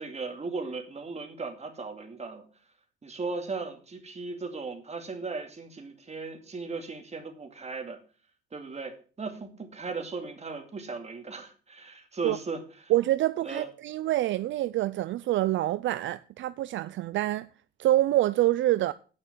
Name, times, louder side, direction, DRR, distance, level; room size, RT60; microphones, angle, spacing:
voice 1, 0.0-2.4 3.0-8.0 8.5-12.9 13.4-13.7, right 4 dB, 35° right, 2.4 m, -37 dB
voice 2, 12.9-17.5 17.8-18.9, right 15 dB, 70° right, 0.4 m, -26 dB
9.6 x 5.9 x 7.4 m
cardioid pair, 90°, 20 cm